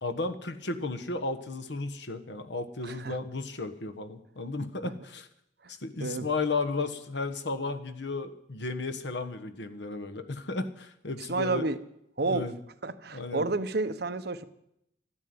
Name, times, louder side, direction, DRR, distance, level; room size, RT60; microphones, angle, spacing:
voice 1, 0.0-5.3 5.7-11.6 12.3-12.5 13.1-13.4, left 3 dB, 75° left, 8 dB, 1.4 m, -34 dB
voice 2, 2.8-3.2 4.8-4.9 5.6-5.7 6.0-6.3 11.3-11.8 12.2-12.5 12.8-14.4, right 3 dB, 60° right, 10 dB, 1.0 m, -30 dB
13.5 x 10.0 x 9.5 m, 0.77 s
head